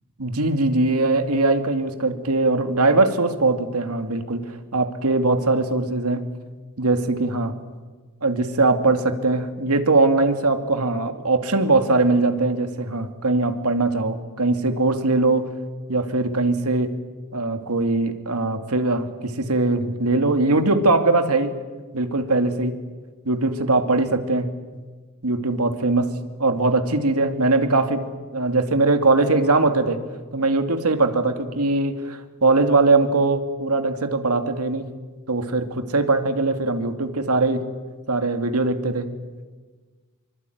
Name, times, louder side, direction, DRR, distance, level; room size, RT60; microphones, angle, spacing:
voice 1, 0.2-6.2 6.8-7.5 8.2-15.5 15.9-16.9 17.3-21.6 21.9-22.8 23.3-24.5 25.2-26.1 26.4-28.1 28.3-30.0 30.3-34.9 35.3-37.6 38.1-39.1, right 2 dB, 85° right, 7 dB, 2.5 m, -21 dB
25.5 x 24.0 x 9.4 m, 1.4 s
head